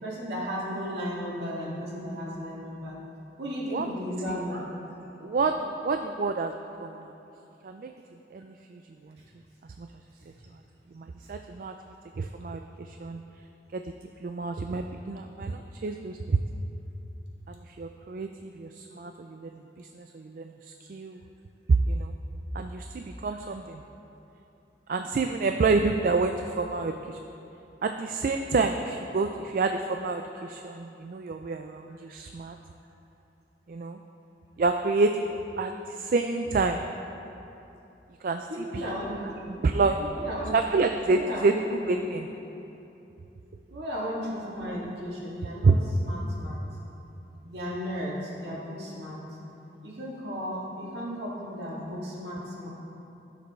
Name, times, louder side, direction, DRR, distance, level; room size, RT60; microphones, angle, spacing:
voice 1, 0.0-3.0 3.4-4.6 38.5-39.3 39.6-39.7 40.1-40.6 41.1-42.0 43.7-45.8 46.0-46.5 47.4-49.2 49.8-52.7, equal, 65° right, -6 dB, 2.2 m, -35 dB
voice 2, 5.2-6.5 6.8-7.0 7.6-7.9 8.3-9.2 9.8-9.9 10.9-11.7 12.2-13.2 13.7-13.8 14.2-16.4 17.8-21.2 21.9-22.1 22.5-23.8 24.9-27.2 27.8-32.6 33.7-34.0 34.6-35.3 35.6-36.9 38.2-38.5 38.7-38.8 39.5-40.0 40.5-41.5 41.9-42.3 45.6-45.8, right 3 dB, 50° right, 5 dB, 0.3 m, -28 dB
16.0 x 6.7 x 3.2 m, 2.9 s
head